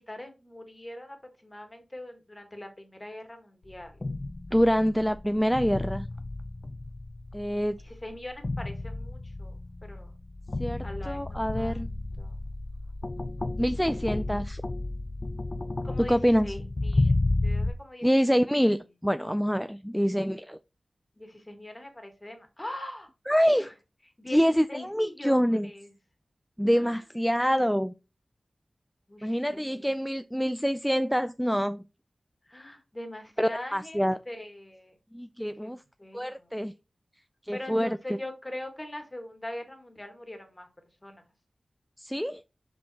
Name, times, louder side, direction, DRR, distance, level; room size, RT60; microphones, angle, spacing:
voice 1, 0.0-4.0 7.8-9.6 9.8-10.1 10.8-11.9 12.2-12.3 15.6-16.2 16.4-17.2 17.4-18.1 21.2-23.1 23.5-23.7 24.2-24.4 24.7-25.9 26.8-27.0 29.1-29.4 29.7-29.9 32.5-35.0 35.6-35.7 36.0-36.5 37.5-40.7 41.0-41.2, left 1 dB, 25° left, 1.7 m, -42 dB
sound 1, 3.7-17.7, left 2 dB, 40° left, 0.6 m, -32 dB
voice 2, 4.5-6.1 7.3-7.8 10.6-11.9 13.6-14.6 16.0-16.5 18.0-20.6 23.3-23.7 24.3-25.7 26.6-27.9 29.2-31.8 33.4-34.2 35.1-35.8 36.1-36.7 37.5-38.0 42.0-42.4, equal, ahead, 0.3 m, -26 dB
5.6 x 5.2 x 4.1 m
wide cardioid pair, 70°, 0 cm